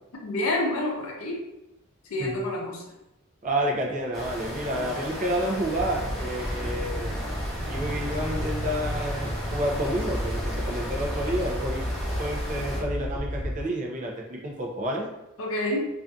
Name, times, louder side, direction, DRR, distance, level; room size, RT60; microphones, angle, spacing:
voice 1, 0.2-1.4 2.1-2.8 15.4-15.8, left 1 dB, 80° left, -1 dB, 0.5 m, -28 dB
voice 2, 3.4-7.2 7.7-11.9 12.2-15.1, right 1 dB, 35° right, 0 dB, 0.4 m, -30 dB
sound 1, 4.1-12.8, equal, ahead, 0.9 m, -35 dB
sound 2, 5.7-13.6, equal, 65° right, 0.7 m, -32 dB
2.5 x 2.4 x 2.2 m, 0.92 s
head